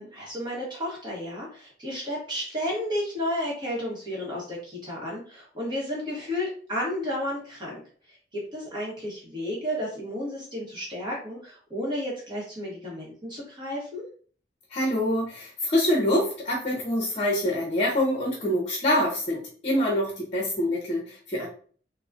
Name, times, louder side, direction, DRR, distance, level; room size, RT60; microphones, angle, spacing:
voice 1, 0.0-7.8 8.1-14.0, left 1 dB, 25° right, -4 dB, 1.1 m, -32 dB
voice 2, 14.7-21.5, left 1 dB, 35° left, -2 dB, 0.7 m, -25 dB
3.8 x 2.1 x 2.4 m, 0.44 s
head